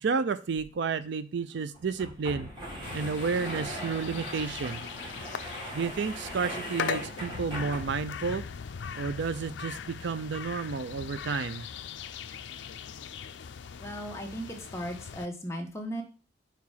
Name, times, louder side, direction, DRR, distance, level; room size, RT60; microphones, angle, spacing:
voice 1, 0.0-2.5 2.9-4.8 5.7-8.4 9.0-11.7, right 5 dB, 70° right, 13 dB, 0.4 m, -31 dB
sound 1, 0.5-0.6 0.9-1.0 1.7-8.2, equal, 25° right, 1.9 m, -40 dB
sound 2, 2.8-15.3, left 6 dB, 70° left, 0.5 m, -40 dB
voice 2, 13.8-16.0, equal, 15° left, 1 dB, 1.2 m, -36 dB
4.8 x 4.6 x 5.5 m, 0.36 s
head